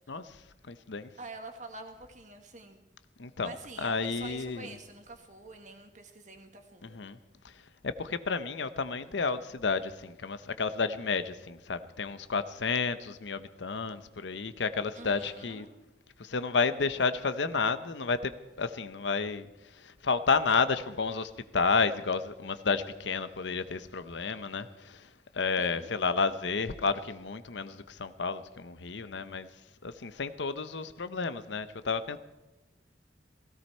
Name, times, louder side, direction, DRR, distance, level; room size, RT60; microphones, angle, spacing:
voice 1, 0.7-1.1 3.2-4.7 6.8-7.2 7.8-15.7 16.2-18.3 18.6-19.5 19.8-25.0 25.3-29.5 29.8-32.2, left 4 dB, 75° left, 12 dB, 0.8 m, -31 dB
voice 2, 1.2-2.8 3.4-7.0 14.9-15.7 25.6-25.9, right 3 dB, 40° right, 5 dB, 1.8 m, -46 dB
16.5 x 16.5 x 4.4 m, 1.0 s
head